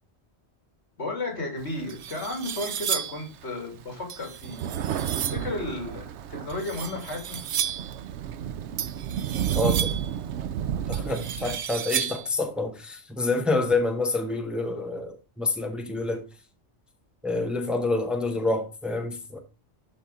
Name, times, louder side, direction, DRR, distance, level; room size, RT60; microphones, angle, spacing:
voice 1, 1.0-4.6 5.1-7.4, left 2 dB, 80° left, 3.2 m, -33 dB
sound 1, 1.4-1.5 1.9-3.3 4.1-5.5 6.5-8.0 8.8-10.1 10.9-12.3, right 9 dB, 55° right, 0.7 m, -33 dB
Thunder, 1.6-2.9 3.4-3.5 3.8-11.6, right 9 dB, 85° right, 0.9 m, -32 dB
voice 2, 9.5-10.0 10.9-16.2 17.2-19.4, left 2 dB, ahead, 1.2 m, -27 dB
12.0 x 4.2 x 3.6 m
omnidirectional pair, 1.1 m